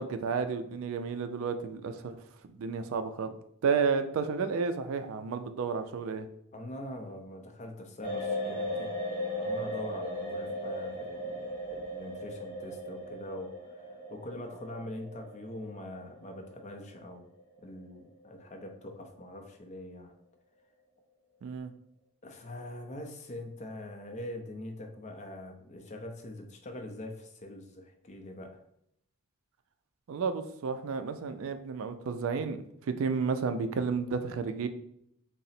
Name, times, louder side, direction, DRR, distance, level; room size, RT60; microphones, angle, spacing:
voice 1, 0.0-2.2 2.5-3.3 3.6-6.3 21.4-21.7 30.1-34.7, right 5 dB, 65° right, 9 dB, 0.3 m, -32 dB
voice 2, 6.5-8.9 9.4-13.5 13.8-17.3 17.6-20.1 22.2-28.6, left 1 dB, 30° left, 3 dB, 0.5 m, -43 dB
sound 1, 8.0-18.0 18.2-18.4, equal, 5° right, 1.5 m, -37 dB
3.7 x 2.0 x 4.1 m, 0.73 s
head